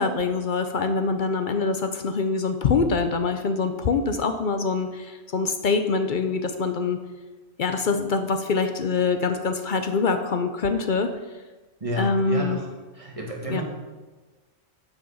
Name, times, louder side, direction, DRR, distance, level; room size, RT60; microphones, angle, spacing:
voice 1, 0.0-7.0 7.6-11.1 12.0-12.6 13.5-13.6, left 4 dB, 55° left, 7 dB, 0.6 m, -24 dB
voice 2, 11.8-12.7 12.9-13.6, equal, 25° right, -1 dB, 1.6 m, -30 dB
7.1 x 6.3 x 5.5 m, 1.3 s
omnidirectional pair, 1.4 m